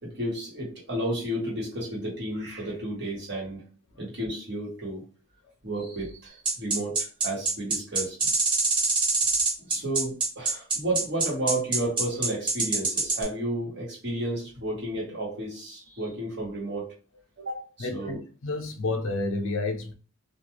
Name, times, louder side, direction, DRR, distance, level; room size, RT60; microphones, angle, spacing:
voice 1, 0.0-3.6 4.0-5.0 5.6-8.3 9.6-16.9 17.4-18.2, right 1 dB, 55° right, 1.2 m, -32 dB
sound 1, 6.5-13.2, right 3 dB, 25° right, 0.8 m, -24 dB
voice 2, 17.8-19.9, left 2 dB, 65° left, 0.5 m, -30 dB
2.4 x 2.2 x 3.0 m
head